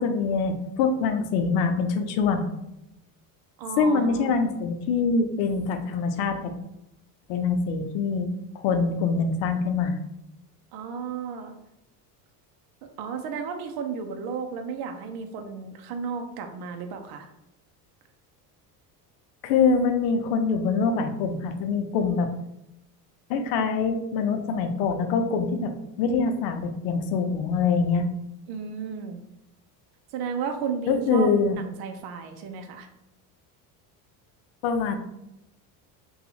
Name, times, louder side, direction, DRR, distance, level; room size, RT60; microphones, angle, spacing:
voice 1, 0.0-2.5 3.8-6.5 7.3-8.3 8.6-10.0 19.4-22.3 23.3-25.7 26.0-28.1 30.9-31.6 34.6-35.0, left 5 dB, 70° left, 7 dB, 0.7 m, -24 dB
voice 2, 3.6-4.3 10.7-11.6 13.0-17.3 28.5-29.2 30.1-32.9, right 6 dB, 50° right, 5 dB, 0.6 m, -33 dB
2.7 x 2.4 x 4.0 m, 0.86 s
supercardioid pair, 95°, 48 cm